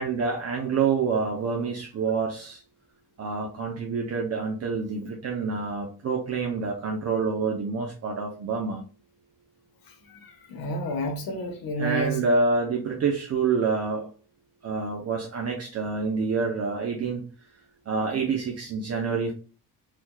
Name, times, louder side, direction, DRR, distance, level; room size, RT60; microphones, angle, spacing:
voice 1, 0.0-2.6 3.2-8.9 11.8-14.1 14.6-17.2 17.9-19.3, right 4 dB, 45° right, 0.7 m, -27 dB
voice 2, 10.1-12.2, right 1 dB, 75° left, 1.2 m, -30 dB
4.3 x 2.8 x 2.2 m
cardioid pair, 120°, 36 cm